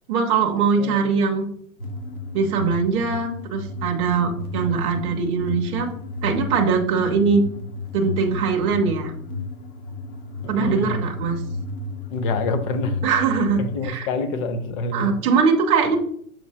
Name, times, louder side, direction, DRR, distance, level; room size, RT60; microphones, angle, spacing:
voice 1, 0.1-1.5 2.3-5.9 6.2-7.4 7.9-9.1 10.5-11.4 13.0-13.6 13.8-14.1 14.9-16.0, right 5 dB, 15° right, 2 dB, 0.4 m, -21 dB
voice 2, 0.8-1.4 10.4-11.0 12.1-13.0 13.6-15.1, left 3 dB, 35° left, 9 dB, 0.6 m, -27 dB
sound 1, 1.8-13.9, left 2 dB, 85° left, 1.1 m, -33 dB
7.2 x 2.7 x 2.7 m, 0.63 s
hypercardioid pair, 115°, 43 cm